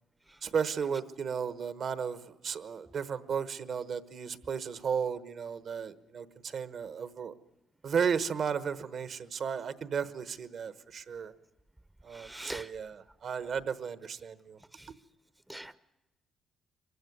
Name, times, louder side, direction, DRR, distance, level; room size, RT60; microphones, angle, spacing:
voice 1, 0.4-7.3 7.8-11.3 12.0-14.6, right 6 dB, 60° right, 14 dB, 1.1 m, -34 dB
voice 2, 12.2-12.7 15.5-15.7, right 1 dB, 10° right, 14 dB, 0.7 m, -41 dB
23.5 x 15.0 x 9.6 m, 1.0 s
cardioid pair, 90°, 0 cm